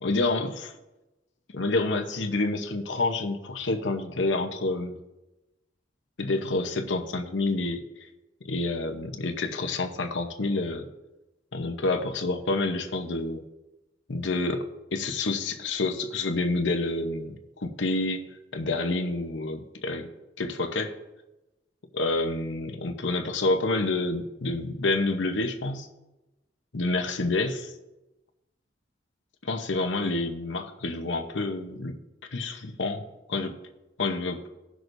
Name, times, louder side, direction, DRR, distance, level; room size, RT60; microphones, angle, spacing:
voice 1, 0.0-0.7 1.5-5.0 6.2-7.8 8.4-10.9 11.5-13.4 14.1-18.2 18.5-20.1 20.4-20.9 21.9-25.9 26.7-27.7 29.4-32.0 32.3-33.5 34.0-34.4, left 2 dB, 80° left, 5 dB, 0.9 m, -28 dB
17.5 x 6.2 x 2.6 m, 1.0 s
head